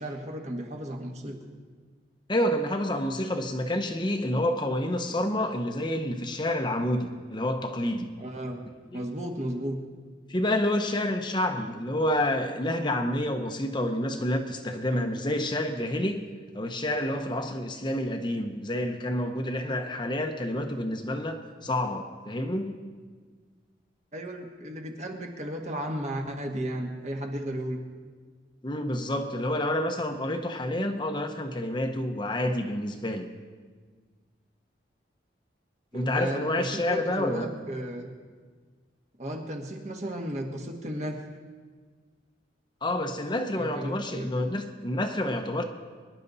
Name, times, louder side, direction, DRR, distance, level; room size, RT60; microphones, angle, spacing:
voice 1, 0.0-1.4 8.2-8.6 8.9-9.8 24.1-27.8 35.9-38.1 39.2-41.2 43.5-44.3, right 1 dB, 40° right, 2 dB, 1.5 m, -34 dB
voice 2, 2.3-8.1 8.9-9.0 10.3-16.3 16.5-22.8 28.6-33.3 35.9-37.5 42.8-45.6, left 1 dB, 25° left, 4 dB, 0.9 m, -28 dB
23.5 x 11.0 x 4.1 m, 1.5 s
head